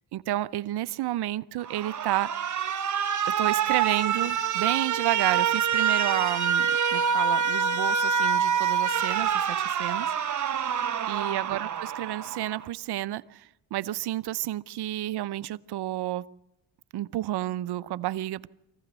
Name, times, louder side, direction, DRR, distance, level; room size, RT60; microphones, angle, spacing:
voice 1, 0.0-2.5 3.4-10.1 11.1-16.3 16.9-18.5, right 14 dB, 70° right, 0.8 m, -31 dB
Alarm, 1.6-12.7, right 7 dB, 45° right, 1.2 m, -26 dB
23.5 x 16.0 x 8.1 m
supercardioid pair, 70°, 41 cm